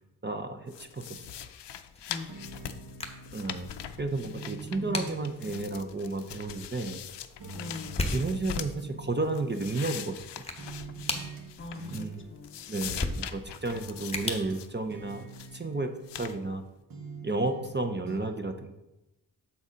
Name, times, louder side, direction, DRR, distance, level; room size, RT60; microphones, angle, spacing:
voice 1, 0.2-1.4 3.3-3.7 4.0-7.0 8.1-10.2 11.9-12.3 12.7-15.3 15.5-15.9 16.1-16.6 17.2-18.7, right 2 dB, 25° right, 5 dB, 0.6 m, -32 dB
sound 1, 0.7-5.0 5.2-8.8 9.2-12.2 12.4-14.7 15.1-15.6 16.1-16.4, left 10 dB, 90° left, 0.5 m, -42 dB
sound 2, 1.9-15.6, left 2 dB, 15° left, 0.9 m, -40 dB
voice 2, 2.1-2.6 4.7-5.4 7.5-8.1 11.6-12.8 14.0-14.1, left 2 dB, 30° left, 6 dB, 0.7 m, -43 dB
sound 3, 2.3-3.9 4.2-7.1 7.4-10.3 10.6-11.4 11.7-13.4 13.7-16.6 16.9-17.8 18.1-18.2, right 3 dB, 60° right, 1.2 m, -46 dB
7.2 x 4.1 x 5.0 m, 0.94 s
cardioid pair, 70°, 41 cm